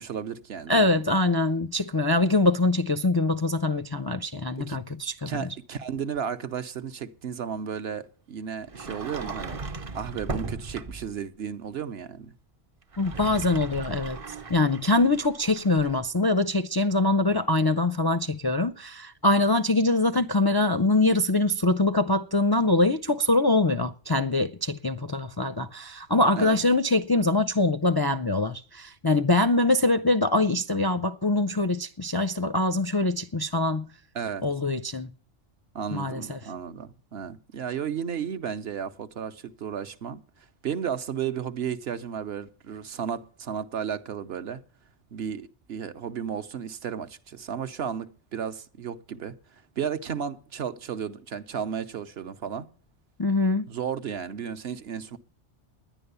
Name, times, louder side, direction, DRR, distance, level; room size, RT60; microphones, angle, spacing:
voice 1, 0.0-0.9 4.6-4.8 5.3-9.6 9.9-12.3 26.4-26.6 34.1-34.4 35.7-40.2 40.6-44.6 45.1-52.7 53.7-55.2, right 7 dB, 65° right, 1.0 m, -33 dB
voice 2, 0.7-5.5 13.0-14.2 14.5-33.9 34.4-35.1 35.9-36.4 53.2-53.7, left 2 dB, 35° left, 0.4 m, -24 dB
Sliding door, 8.7-11.2 12.8-16.0, right 3 dB, 35° right, 0.6 m, -37 dB
11.0 x 10.0 x 6.8 m
omnidirectional pair, 1.2 m